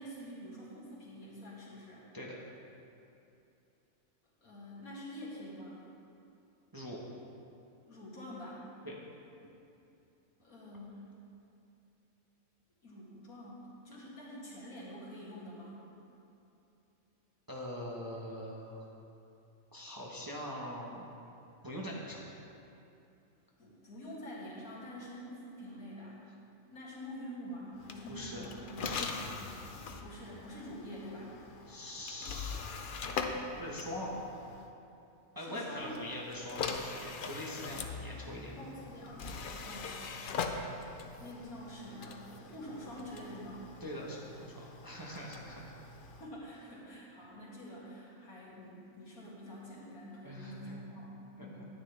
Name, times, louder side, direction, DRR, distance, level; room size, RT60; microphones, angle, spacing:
voice 1, 0.0-2.1 4.4-5.9 7.9-8.7 10.4-11.1 12.8-15.8 23.6-26.2 26.7-29.6 29.9-31.4 35.4-35.9 38.5-40.0 40.7-40.9 41.2-43.7 46.2-51.7, equal, 80° left, -6 dB, 2.5 m, -47 dB
voice 2, 6.7-7.0 8.8-8.9 17.5-18.8 19.7-21.1 21.6-22.2 28.1-28.4 28.8-29.3 31.7-32.7 33.6-34.1 35.3-38.6 43.8-45.7 50.2-50.8 51.4-51.7, left 1 dB, 15° right, -4 dB, 0.9 m, -43 dB
sound 1, 27.8-34.7 35.8-46.3, left 4 dB, 55° left, 0.6 m, -42 dB
10.0 x 9.9 x 3.3 m, 2.7 s
omnidirectional pair, 1.5 m